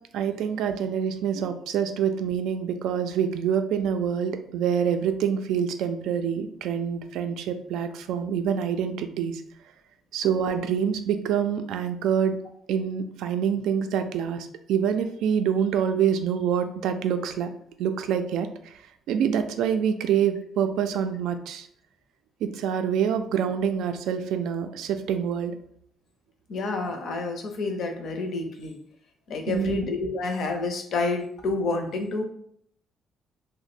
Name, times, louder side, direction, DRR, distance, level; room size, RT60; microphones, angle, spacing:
voice 1, 0.1-9.4 10.1-12.4 12.7-17.5 17.8-18.8 19.1-21.7 22.4-25.6 29.5-29.8, right 8 dB, 85° right, 8 dB, 0.3 m, -26 dB
voice 2, 26.5-28.8 29.3-32.2, left 3 dB, 50° left, 4 dB, 0.5 m, -29 dB
2.9 x 2.1 x 4.1 m, 0.66 s
cardioid pair, 170°, 0 cm